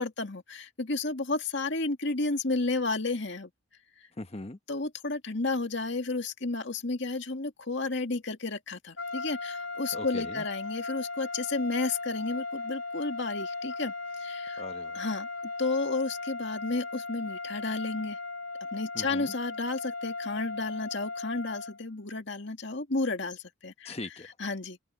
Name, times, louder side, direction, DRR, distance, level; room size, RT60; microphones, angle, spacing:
voice 1, 0.0-3.5 4.7-13.9 14.2-14.6 14.9-15.3 15.6-18.2 18.7-24.0 24.4-24.8, left 3 dB, 60° left, 2.2 m, -32 dB
voice 2, 4.2-4.6 9.9-10.4 14.6-15.1 18.9-19.3 23.8-24.3, left 2 dB, 30° left, 1.1 m, -40 dB
sound 1, 9.0-21.8, left 3 dB, 80° left, 3.5 m, -37 dB
head